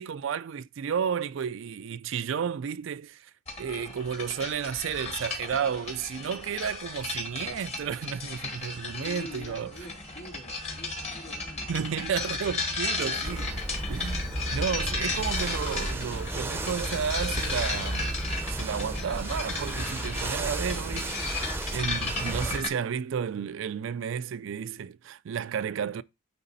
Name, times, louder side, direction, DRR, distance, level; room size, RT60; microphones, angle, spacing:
voice 1, 0.0-3.3 3.6-9.7 11.7-13.6 13.9-18.2 18.5-21.3 21.7-26.0, right 7 dB, 65° right, 0.4 m, -32 dB
sound 1, 3.5-22.7, left 3 dB, 30° left, 1.5 m, -34 dB
voice 2, 8.7-11.7, left 1 dB, 75° left, 2.5 m, -45 dB
sound 2, 13.2-22.6, right 1 dB, 10° right, 0.6 m, -34 dB
9.6 x 3.6 x 4.0 m
head